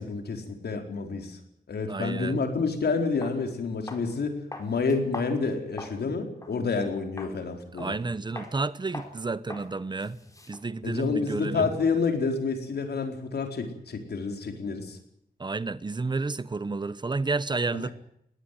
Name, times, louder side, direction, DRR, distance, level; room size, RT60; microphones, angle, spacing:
voice 1, 0.0-1.4 1.7-8.0 10.8-15.0 17.7-17.9, left 4 dB, 85° left, 4.5 m, -29 dB
voice 2, 1.9-2.4 7.8-10.2 10.5-11.7 15.4-17.9, right 3 dB, 25° right, 0.9 m, -31 dB
sound 1, 2.6-2.7 3.2-3.4 3.9-4.1 4.5-6.0 6.4-6.6 7.2-7.4 7.8-8.1 8.4-8.5 8.9-9.2 9.5-9.7 10.0-11.9, left 2 dB, 20° left, 4.3 m, -42 dB
21.0 x 17.5 x 9.3 m
wide cardioid pair, 160°, 16 cm